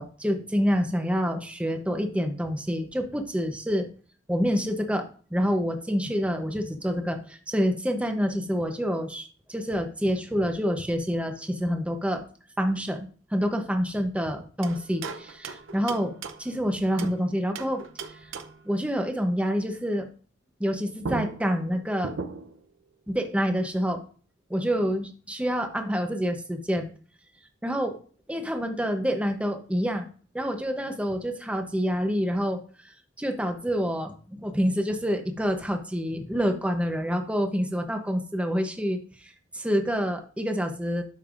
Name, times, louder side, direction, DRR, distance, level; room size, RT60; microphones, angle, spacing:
voice 1, 0.0-3.9 4.3-12.2 12.6-17.8 18.2-18.3 18.7-20.1 20.6-22.1 23.1-24.0 24.5-26.9 27.6-28.0 28.3-30.1 30.3-32.6 33.2-41.0, equal, 5° right, 5 dB, 0.8 m, -27 dB
sound 1, 14.6-17.2 17.5-18.7 20.6-20.7 21.0-22.7, right 4 dB, 80° right, 0.7 m, -37 dB
12.0 x 5.4 x 2.5 m, 0.41 s
head